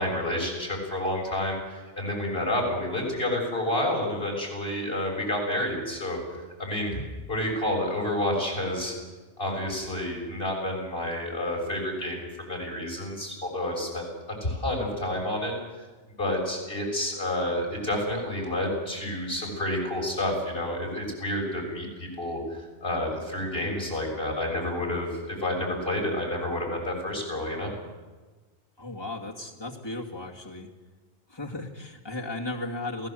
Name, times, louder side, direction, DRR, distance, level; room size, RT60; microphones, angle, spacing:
voice 1, 0.0-6.2 6.6-7.0 7.3-8.9 9.4-14.1 14.4-15.5 16.2-27.7, left 1 dB, 55° left, -1 dB, 7.4 m, -29 dB
voice 2, 28.8-30.7 31.3-33.1, left 2 dB, 20° left, -1 dB, 2.5 m, -35 dB
28.5 x 17.0 x 7.8 m, 1.3 s
omnidirectional pair, 1.2 m